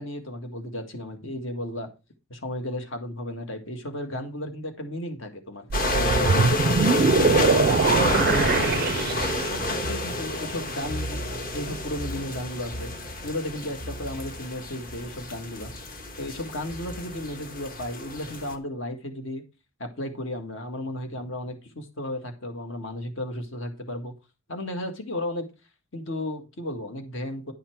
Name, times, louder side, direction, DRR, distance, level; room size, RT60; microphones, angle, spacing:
voice 1, 0.0-1.9 2.3-8.9 9.4-12.9 13.2-15.7 16.2-19.4 19.8-24.1 24.5-25.5 25.9-27.5, left 1 dB, 60° left, 6 dB, 1.8 m, -34 dB
sound 1, 5.7-18.6, left 1 dB, 40° left, 1.4 m, -29 dB
sound 2, 5.7-9.7, right 5 dB, 45° right, 0.4 m, -23 dB
11.0 x 5.7 x 4.6 m, 0.29 s
head